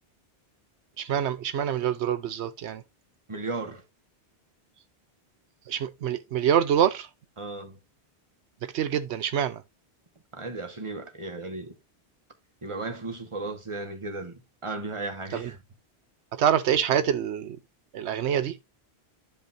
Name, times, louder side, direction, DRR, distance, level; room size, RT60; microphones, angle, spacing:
voice 1, 1.0-2.8 5.7-7.1 8.7-9.6 15.3-15.5 16.3-17.6 17.9-18.6, right 9 dB, 85° right, 0.9 m, -26 dB
voice 2, 3.3-3.8 7.4-7.8 10.3-11.7 12.6-15.6, right 3 dB, 30° right, 1.5 m, -35 dB
12.0 x 5.2 x 2.6 m
omnidirectional pair, 1.1 m